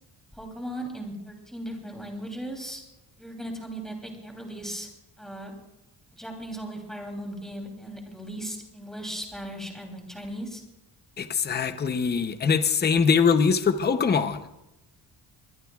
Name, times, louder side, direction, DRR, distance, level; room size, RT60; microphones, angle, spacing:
voice 1, 0.3-2.8 3.2-4.9 5.2-5.5 6.1-10.6, right 1 dB, ahead, 1 dB, 3.0 m, -37 dB
voice 2, 11.2-14.4, left 6 dB, 25° left, 9 dB, 0.7 m, -22 dB
23.5 x 20.5 x 2.3 m, 0.89 s
wide cardioid pair, 175°, 44 cm